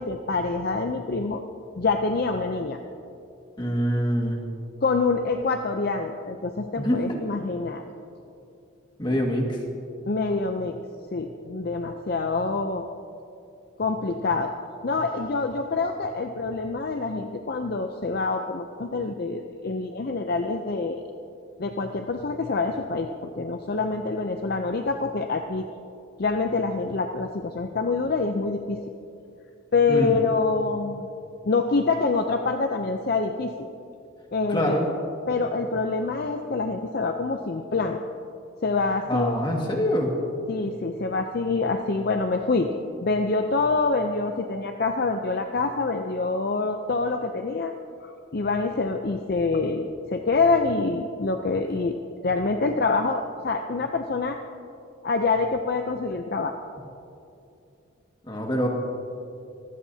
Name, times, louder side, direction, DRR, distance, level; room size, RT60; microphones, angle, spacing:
voice 1, 0.0-1.4 1.8-2.8 4.8-7.8 10.1-10.8 11.1-12.9 13.8-14.5 14.8-21.0 21.6-25.7 26.2-28.8 29.7-31.1 31.5-33.6 34.3-34.8 35.3-38.0 38.6-39.4 40.5-42.7 43.0-47.7 48.0-52.0 52.2-54.4 55.0-56.6, left 3 dB, 45° left, 5 dB, 0.5 m, -26 dB
voice 2, 3.6-4.4 6.8-7.0 9.0-9.6 29.9-30.2 34.5-34.9 39.1-40.2 58.3-58.7, equal, 20° left, 0 dB, 1.8 m, -24 dB
23.0 x 16.0 x 2.8 m, 2.6 s
head